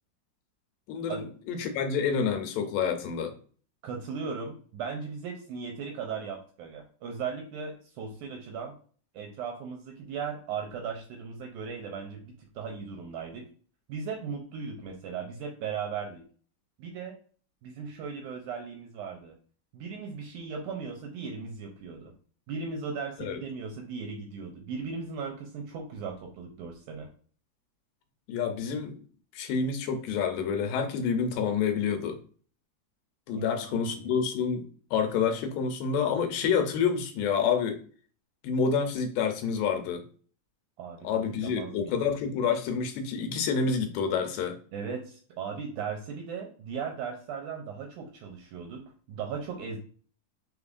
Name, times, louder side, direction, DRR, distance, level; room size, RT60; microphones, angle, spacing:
voice 1, 0.9-3.3 23.2-23.4 28.3-29.0 29.3-32.2 33.3-37.8 38.4-40.0 41.0-44.6, left 6 dB, 80° left, 6 dB, 2.4 m, -28 dB
voice 2, 3.8-8.7 9.1-13.5 13.9-16.2 16.8-17.1 17.6-19.4 19.7-22.1 22.5-27.1 33.3-34.1 40.8-42.0 44.7-48.8 49.1-49.8, right 5 dB, 80° right, 2 dB, 1.9 m, -37 dB
5.4 x 3.5 x 2.4 m, 0.43 s
omnidirectional pair, 4.1 m